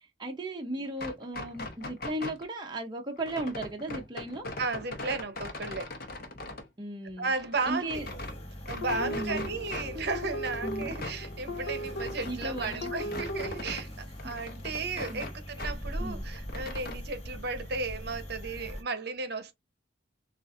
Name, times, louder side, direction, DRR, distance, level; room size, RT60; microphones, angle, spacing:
voice 1, 0.2-4.5 6.8-7.3 7.7-8.1 9.0-9.5 10.6-10.9 12.2-13.2 15.1-15.3 16.0-16.3, right 1 dB, 20° right, 0.6 m, -36 dB
sound 1, 0.9-2.5 3.2-6.7 7.1-8.4 8.7-9.9 10.2-13.9 14.1-15.8 16.1-17.0, left 2 dB, 50° left, 0.8 m, -40 dB
voice 2, 4.6-5.9 7.2-8.0 8.7-19.5, right 3 dB, 55° right, 0.8 m, -34 dB
sound 2, 7.9-18.8, equal, 30° left, 1.2 m, -41 dB
sound 3, 8.8-13.6, equal, 75° left, 0.6 m, -38 dB
6.9 x 2.4 x 2.4 m
head